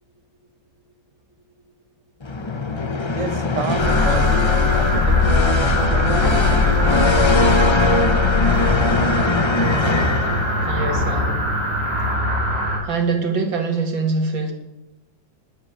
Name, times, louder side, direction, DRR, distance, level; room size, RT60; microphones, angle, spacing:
Dramatic evil theme orchestra, 2.2-10.9, left 2 dB, 45° left, 0.3 m, -21 dB
voice 1, 3.1-5.4 5.9-7.3, right 6 dB, 50° right, 1.2 m, -30 dB
sound 1, 3.8-12.8, left 3 dB, 30° right, 4.2 m, -20 dB
voice 2, 10.6-11.5 12.8-14.5, right 4 dB, 85° right, 3.1 m, -23 dB
20.0 x 7.8 x 8.4 m
omnidirectional pair, 2.0 m